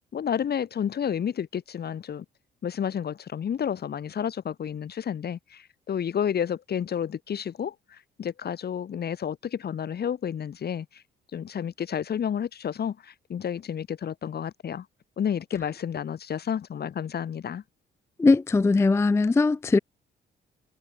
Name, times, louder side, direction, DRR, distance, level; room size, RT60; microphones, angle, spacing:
voice 1, 0.1-2.2 2.6-11.0 11.3-14.9 15.2-17.6, left 8 dB, 55° left, 2.4 m, -31 dB
voice 2, 18.2-19.8, left 3 dB, 15° left, 0.3 m, -20 dB
cardioid pair, 90°, 20 cm